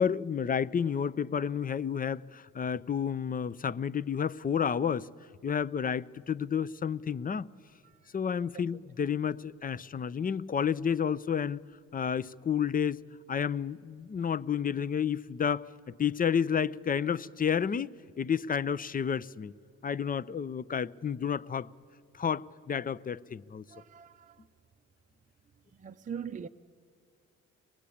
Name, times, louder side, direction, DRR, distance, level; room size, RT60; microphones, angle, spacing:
voice 1, 0.0-5.1 5.4-7.5 8.1-11.6 11.9-13.0 13.3-19.5 19.8-21.7 22.1-23.7, left 7 dB, 30° left, 0.5 m, -30 dB
voice 2, 23.7-24.4 25.8-26.5, right 7 dB, 25° right, 0.6 m, -42 dB
23.5 x 20.0 x 8.5 m
cardioid pair, 90°, 30 cm